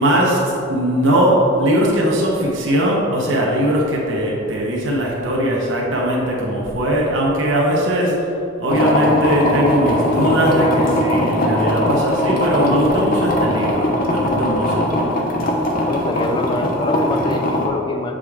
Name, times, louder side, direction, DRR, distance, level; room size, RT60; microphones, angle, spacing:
voice 1, 0.0-8.3 8.6-14.9, equal, 65° right, -3 dB, 1.0 m, -19 dB
sound 1, 8.7-17.7, left 1 dB, 45° left, 0.7 m, -20 dB
voice 2, 15.9-18.2, left 2 dB, 20° left, 4 dB, 0.4 m, -25 dB
7.4 x 5.0 x 3.6 m, 2.9 s
head